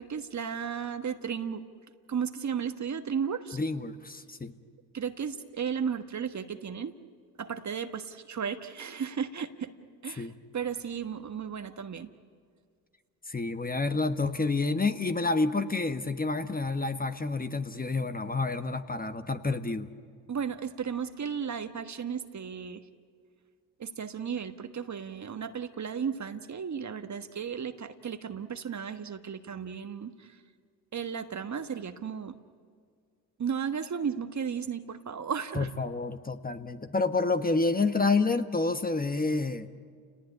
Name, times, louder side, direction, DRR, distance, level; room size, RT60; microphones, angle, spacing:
voice 1, 0.0-1.6 2.1-3.6 4.9-6.9 7.4-9.7 10.0-10.3 10.5-12.1 20.3-22.8 23.8-30.3 30.9-32.3 33.4-35.7, right 7 dB, 40° right, 9 dB, 1.4 m, -34 dB
voice 2, 3.5-4.5 10.2-10.3 13.3-19.9 35.5-39.7, left 3 dB, 20° left, 9 dB, 1.3 m, -29 dB
29.5 x 18.5 x 9.9 m, 2.1 s
hypercardioid pair, 55°, 44 cm